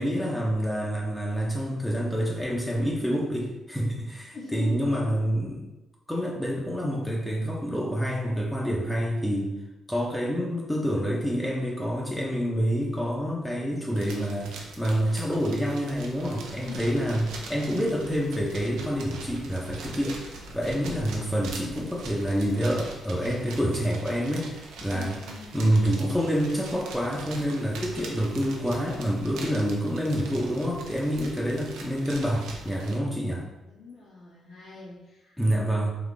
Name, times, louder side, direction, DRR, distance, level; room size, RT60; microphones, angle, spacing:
voice 1, 0.0-5.7 6.1-9.5 9.9-20.2 20.5-25.2 25.5-33.4 35.4-36.0, equal, 5° left, -3 dB, 0.7 m, -27 dB
voice 2, 4.3-5.0 16.6-17.0 24.9-26.1 33.6-35.4, left 2 dB, 85° left, -9 dB, 1.5 m, -41 dB
sound 1, 13.9-33.0, right 3 dB, 85° right, 0.6 m, -42 dB
4.0 x 2.7 x 3.4 m, 1.0 s
cardioid pair, 90°, 0 cm